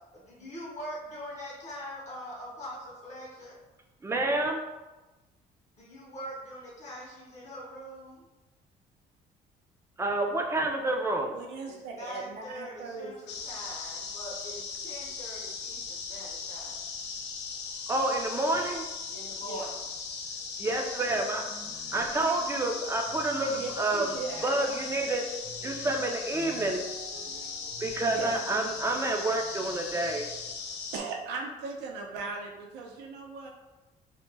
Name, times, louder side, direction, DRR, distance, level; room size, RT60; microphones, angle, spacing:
voice 1, 0.0-3.6 5.7-8.3 11.7-16.9 19.1-19.7, equal, 45° left, -3 dB, 0.6 m, -43 dB
voice 2, 4.0-4.6 10.0-11.3 17.9-18.9 20.6-21.4 21.9-24.1 24.4-25.2 25.6-26.8 27.8-30.3, right 2 dB, 15° right, 2 dB, 0.3 m, -28 dB
voice 3, 11.2-13.1 19.5-19.6 23.5-24.5 24.9-25.1 25.6-25.8 28.1-28.3 30.9-33.5, right 4 dB, 90° right, 1 dB, 0.5 m, -38 dB
sound 1, 13.3-31.0, left 5 dB, 85° left, 0.4 m, -38 dB
sound 2, 21.3-30.5, equal, 65° right, 0.8 m, -52 dB
2.1 x 2.1 x 3.2 m, 1.1 s
cardioid pair, 110°, 17 cm